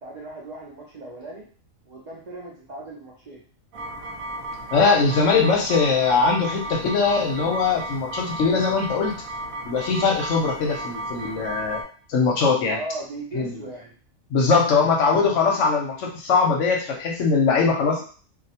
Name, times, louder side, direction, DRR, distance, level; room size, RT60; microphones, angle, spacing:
voice 1, 0.0-1.5 1.9-3.4 12.6-14.0, right 2 dB, 60° right, -5 dB, 0.4 m, -37 dB
sound 1, 3.7-11.8, right 1 dB, 85° right, 1.1 m, -34 dB
voice 2, 4.7-9.2 9.7-11.8 12.1-12.8 13.3-13.5 14.3-18.0, left 4 dB, 70° left, 0 dB, 0.9 m, -21 dB
2.4 x 2.1 x 2.7 m, 0.41 s
omnidirectional pair, 1.4 m